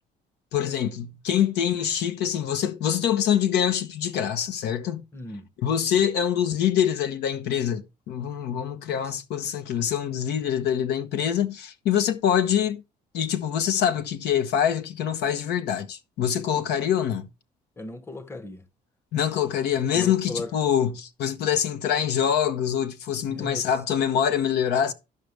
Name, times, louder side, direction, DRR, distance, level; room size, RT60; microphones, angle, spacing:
voice 1, 0.5-5.0 5.6-12.8 13.1-17.3 19.1-24.9, left 9 dB, 75° left, 1.0 m, -25 dB
voice 2, 5.1-5.5 9.0-9.2 17.8-18.6 19.9-20.5 23.3-23.7, left 2 dB, 15° left, 0.9 m, -36 dB
13.5 x 5.4 x 3.3 m
cardioid pair, 110°, 17 cm